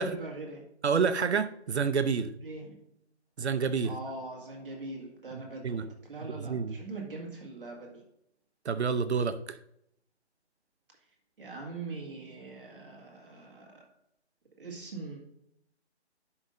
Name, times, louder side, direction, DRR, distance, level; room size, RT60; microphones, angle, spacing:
voice 1, 0.0-0.7 2.4-2.8 3.8-8.0 11.4-13.9 14.6-15.2, right 3 dB, 50° right, -1 dB, 2.0 m, -42 dB
voice 2, 0.8-2.3 3.4-3.9 5.6-5.8 6.4-6.8 8.6-9.6, right 5 dB, 70° right, 11 dB, 0.7 m, -28 dB
11.0 x 5.5 x 2.6 m, 0.76 s
hypercardioid pair, 170°, 34 cm